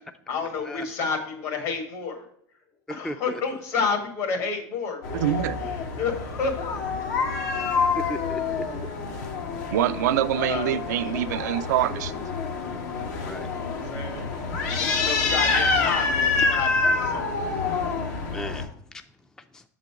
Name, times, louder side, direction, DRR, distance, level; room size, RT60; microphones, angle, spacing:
voice 1, 0.3-2.3 2.9-5.4 6.0-6.8 9.7-9.8 10.3-11.2 13.5-14.2 14.7-17.3, left 5 dB, 65° left, 1.9 m, -30 dB
voice 2, 3.0-3.4 8.0-8.9 13.2-13.5 18.3-18.7 19.5-19.6, left 1 dB, 5° left, 0.3 m, -35 dB
sound 1, 5.0-18.6, left 4 dB, 85° left, 1.2 m, -27 dB
voice 3, 5.1-5.6 9.7-12.1, right 11 dB, 90° right, 0.4 m, -25 dB
6.7 x 4.0 x 4.6 m
supercardioid pair, 115°, 9 cm